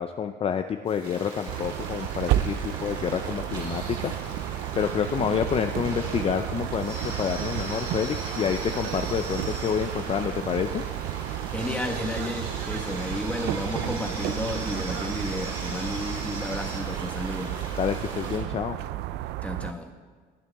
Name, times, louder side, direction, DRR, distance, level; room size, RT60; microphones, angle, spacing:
voice 1, 0.0-4.1 4.8-10.8 17.7-18.8, left 7 dB, 35° left, 8 dB, 0.5 m, -28 dB
sound 1, 0.9-18.4, right 2 dB, 30° right, 3.9 m, -39 dB
sound 2, 1.5-19.7, right 13 dB, 85° right, 0.4 m, -32 dB
voice 2, 11.3-17.6 19.4-19.9, left 1 dB, 5° left, 4 dB, 1.3 m, -33 dB
22.0 x 7.7 x 3.5 m, 1.5 s
cardioid pair, 110°, 17 cm